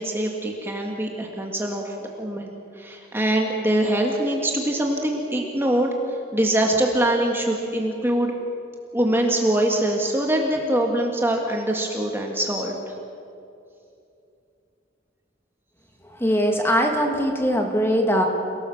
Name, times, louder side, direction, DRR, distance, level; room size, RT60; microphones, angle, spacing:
voice 1, 0.0-8.3 8.9-12.8, right 1 dB, 10° right, 0 dB, 1.8 m, -23 dB
voice 2, 16.0-18.2, equal, 15° left, 2 dB, 2.4 m, -21 dB
28.5 x 17.5 x 7.2 m, 2.6 s
head